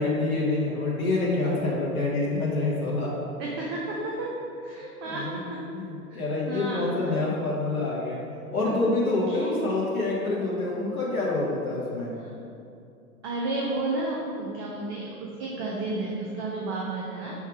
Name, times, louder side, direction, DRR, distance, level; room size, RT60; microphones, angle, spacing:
voice 1, 0.0-3.1 5.0-5.4 5.7-8.2 8.5-12.1, left 2 dB, 75° left, -6 dB, 1.3 m, -27 dB
voice 2, 3.4-4.3 4.6-5.6 6.1-6.2 6.5-7.1 8.6-8.8 9.3-9.5 12.2-12.3 13.2-17.3, right 2 dB, 20° right, -3 dB, 0.3 m, -32 dB
6.0 x 3.5 x 4.8 m, 2.6 s
figure-of-eight pair, 95°, 44 cm